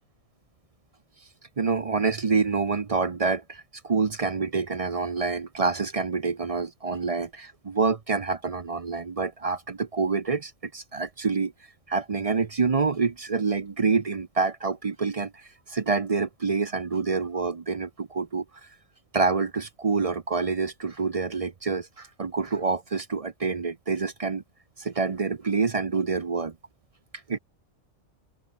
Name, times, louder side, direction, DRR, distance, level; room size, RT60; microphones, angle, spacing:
voice 1, 1.6-11.5 11.9-18.4 19.1-24.4 24.8-26.5 27.3-27.4, right 4 dB, 35° right, 0.6 m, -27 dB
open air
omnidirectional pair, 1.4 m